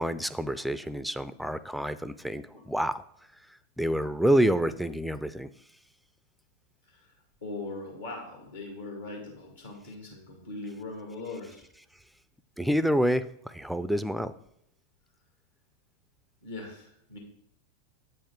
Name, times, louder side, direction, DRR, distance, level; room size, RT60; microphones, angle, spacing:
voice 1, 0.0-3.0 3.8-5.5 12.6-14.3, equal, ahead, 15 dB, 0.3 m, -27 dB
voice 2, 7.4-11.7 16.4-17.2, left 2 dB, 70° left, 1 dB, 2.0 m, -40 dB
8.5 x 7.6 x 3.6 m, 0.73 s
figure-of-eight pair, 90°, 0 cm